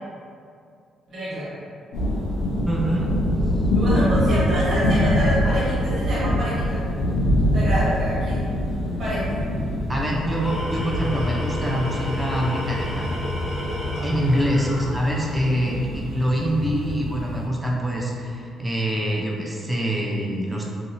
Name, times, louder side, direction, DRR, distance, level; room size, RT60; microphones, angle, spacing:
voice 1, 1.1-1.5 3.7-6.8 7.5-8.5 9.0-9.3 14.6-14.7 15.6-15.7, equal, 65° right, -9 dB, 1.4 m, -27 dB
sound 1, 1.9-17.4, equal, 80° left, 0.7 m, -25 dB
voice 2, 2.7-3.1 9.9-13.1 14.0-20.7, equal, 15° right, -3 dB, 0.5 m, -25 dB
Tools, 10.1-15.5, left 1 dB, 50° left, 1.1 m, -31 dB
2.8 x 2.7 x 2.5 m, 2.3 s
cardioid pair, 75°, 0 cm